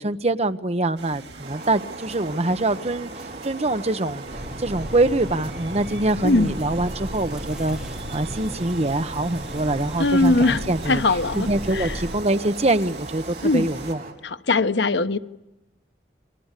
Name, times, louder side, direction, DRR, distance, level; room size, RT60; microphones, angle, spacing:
voice 1, 0.0-4.2 4.6-7.8 8.1-11.0 11.3-14.0, right 2 dB, 35° right, 1.1 m, -24 dB
sound 1, 1.0-13.9, right 3 dB, 75° right, 2.3 m, -42 dB
sound 2, 1.4-14.1, right 2 dB, 55° right, 5.5 m, -38 dB
sound 3, 4.3-12.2, equal, 5° right, 4.7 m, -36 dB
voice 2, 6.2-6.5 10.0-11.9 13.4-13.7 14.2-15.2, left 2 dB, 80° left, 1.1 m, -21 dB
30.0 x 23.0 x 8.4 m
head